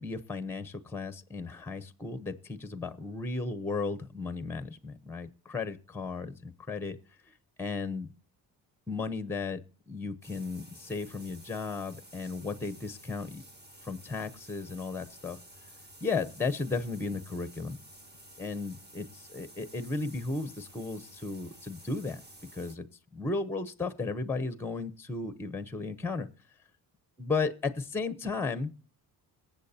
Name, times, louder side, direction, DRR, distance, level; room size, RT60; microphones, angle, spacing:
voice 1, 0.0-7.0 7.3-7.4 7.6-8.1 8.9-9.6 9.9-13.4 13.8-15.4 16.0-17.8 18.4-22.2 22.5-22.9 23.1-26.3 27.2-28.7, left 4 dB, 5° left, 13 dB, 0.8 m, -35 dB
sound 1, 10.2-22.8, right 1 dB, 25° right, 1.4 m, -53 dB
22.5 x 8.0 x 2.8 m, 0.37 s
cardioid pair, 100°, 41 cm